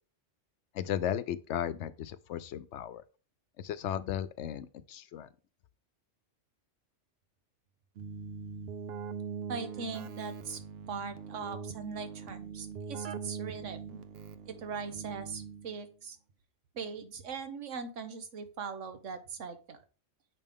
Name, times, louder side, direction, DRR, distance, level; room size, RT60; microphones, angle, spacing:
voice 1, 0.7-3.0 3.6-5.3, left 10 dB, 75° left, 0.9 m, -35 dB
Keyboard (musical), 8.0-15.8, right 6 dB, 65° right, 0.8 m, -42 dB
voice 2, 9.5-10.6 10.9-14.0 14.5-16.2 16.7-19.8, right 5 dB, 80° right, 1.3 m, -40 dB
7.5 x 5.3 x 3.6 m
omnidirectional pair, 1.2 m